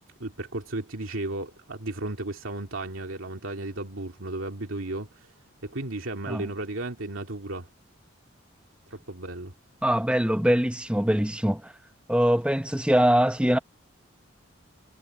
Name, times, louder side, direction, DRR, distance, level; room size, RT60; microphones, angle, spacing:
voice 1, 0.2-5.3 5.6-7.7 8.9-9.5, right 2 dB, 90° right, 2.4 m, -34 dB
voice 2, 9.8-11.7 12.1-13.6, equal, 5° right, 1.1 m, -23 dB
head